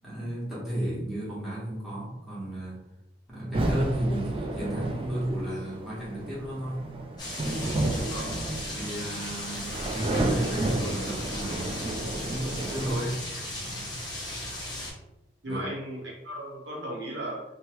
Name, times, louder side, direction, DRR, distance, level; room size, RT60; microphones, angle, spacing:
voice 1, 0.0-2.8 3.3-6.9 8.8-13.2 15.5-15.7, right 1 dB, ahead, -10 dB, 1.1 m, -33 dB
sound 1, 3.5-13.0, right 1 dB, 30° right, 0.3 m, -31 dB
sound 2, 7.2-14.9, left 1 dB, 20° left, 0.7 m, -36 dB
voice 2, 15.4-17.4, right 1 dB, 70° right, -3 dB, 0.9 m, -36 dB
3.0 x 2.1 x 3.0 m, 0.93 s
head